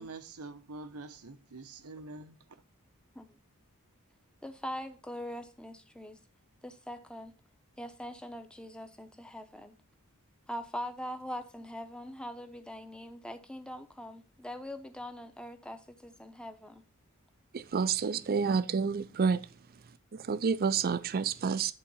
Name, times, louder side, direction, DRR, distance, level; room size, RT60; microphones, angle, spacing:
voice 1, 0.0-2.4, right 3 dB, 90° right, 1.0 m, -45 dB
voice 2, 4.4-6.2 6.6-7.3 7.8-9.7 10.5-16.8, equal, 5° left, 0.8 m, -42 dB
voice 3, 17.5-19.5 20.1-21.7, right 5 dB, 45° right, 0.5 m, -29 dB
11.0 x 3.8 x 5.5 m
head